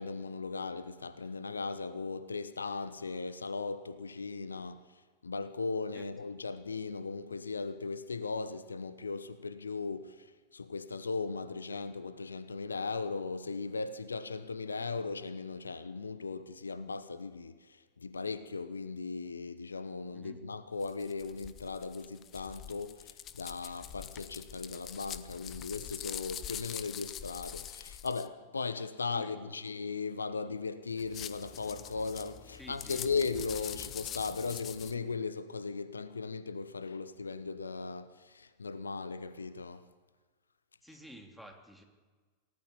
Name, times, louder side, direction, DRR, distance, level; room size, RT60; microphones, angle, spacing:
voice 1, 0.0-4.8 5.2-17.6 18.0-39.9, left 4 dB, 75° left, 0.9 m, -37 dB
voice 2, 5.9-6.3 20.1-20.4 29.1-29.6 32.5-33.1 40.8-41.8, equal, ahead, 3.1 m, -52 dB
sound 1, 20.8-28.3 30.9-34.9, left 10 dB, 30° left, 1.1 m, -44 dB
28.0 x 18.0 x 7.0 m
figure-of-eight pair, 90°, 0 cm